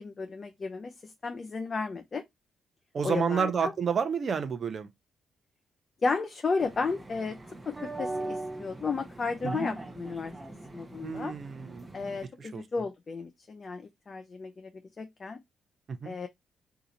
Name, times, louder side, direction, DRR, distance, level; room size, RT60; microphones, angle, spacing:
voice 1, 0.0-2.2 3.0-3.7 6.0-7.4 8.0-10.3 10.7-11.3 11.9-14.7 15.0-15.4 16.0-16.3, left 4 dB, 40° left, 0.5 m, -33 dB
voice 2, 2.9-4.9 9.4-9.7 11.0-11.9 12.4-12.6 16.0-16.1, right 6 dB, 50° right, 0.7 m, -30 dB
sound 1, 6.6-12.3, right 2 dB, 20° right, 0.8 m, -40 dB
2.8 x 2.4 x 4.0 m
supercardioid pair, 60°, 0 cm